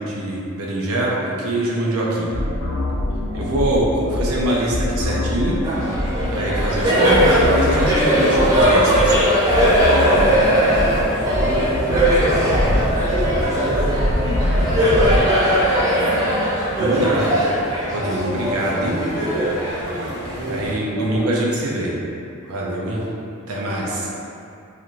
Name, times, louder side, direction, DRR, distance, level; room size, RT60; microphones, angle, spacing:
voice 1, 0.0-2.4 3.3-5.6 6.3-9.2 11.3-11.6 16.8-17.4 17.9-19.0 20.5-22.0 22.4-23.0 23.5-24.1, right 1 dB, 80° right, -4 dB, 0.5 m, -23 dB
sound 1, 2.3-15.2, left 1 dB, 60° left, 0.4 m, -24 dB
Laughter, 5.6-20.6, equal, 15° right, 0.4 m, -19 dB
sound 2, 6.9-20.8, right 1 dB, 55° right, 1.1 m, -38 dB
voice 2, 10.1-14.2 14.7-15.6 19.9-21.4 22.7-23.2 23.5-24.1, right 1 dB, 5° left, -16 dB, 1.2 m, -32 dB
3.0 x 2.5 x 2.5 m, 2.5 s
head